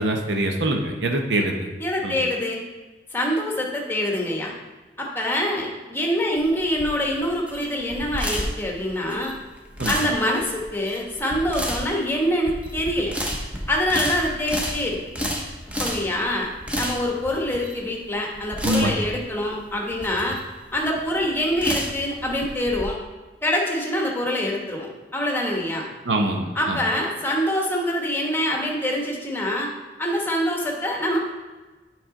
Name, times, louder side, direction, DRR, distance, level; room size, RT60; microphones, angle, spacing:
voice 1, 0.0-1.7 2.0-2.2 9.8-10.0 18.6-18.9 26.1-26.8, right 1 dB, 80° right, 3 dB, 0.8 m, -24 dB
voice 2, 1.8-2.6 3.1-4.5 5.0-9.3 9.9-13.1 13.7-15.0 15.8-16.5 16.7-20.4 20.7-23.0 23.4-25.9 26.5-29.7 30.0-31.2, left 1 dB, 10° left, -1 dB, 1.1 m, -25 dB
sound 1, 6.4-22.8, equal, 5° right, 0.8 m, -31 dB
8.7 x 4.9 x 3.8 m, 1.2 s
head